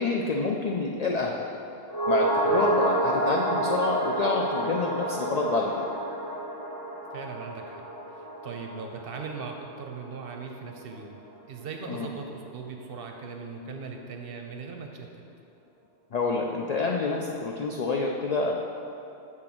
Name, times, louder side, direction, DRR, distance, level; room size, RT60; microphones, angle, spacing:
voice 1, 0.0-1.5 2.1-5.9 11.9-12.1 16.1-18.5, left 3 dB, 65° left, 0 dB, 0.4 m, -28 dB
sound 1, 1.9-10.4 10.6-10.7, right 1 dB, 20° left, 1.0 m, -29 dB
voice 2, 7.1-7.9 8.1-11.2 11.5-15.1, right 5 dB, 60° right, 3 dB, 0.7 m, -39 dB
6.2 x 3.7 x 5.9 m, 2.7 s
omnidirectional pair, 1.2 m